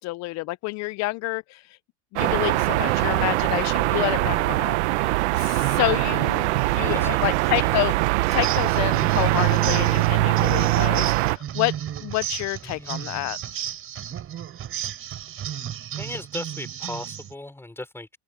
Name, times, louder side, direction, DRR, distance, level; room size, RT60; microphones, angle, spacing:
voice 1, 0.0-1.8 2.1-7.9 8.3-11.7 12.0-13.4, left 21 dB, 50° left, 0.7 m, -28 dB
sound 1, 2.2-11.4, right 20 dB, 75° right, 1.1 m, -22 dB
voice 2, 2.8-3.5 6.8-7.8 12.6-13.2 16.0-18.2, left 1 dB, 5° left, 5.0 m, -38 dB
sound 2, 8.3-17.3, right 10 dB, 40° right, 5.2 m, -34 dB
open air
supercardioid pair, 100°, 34 cm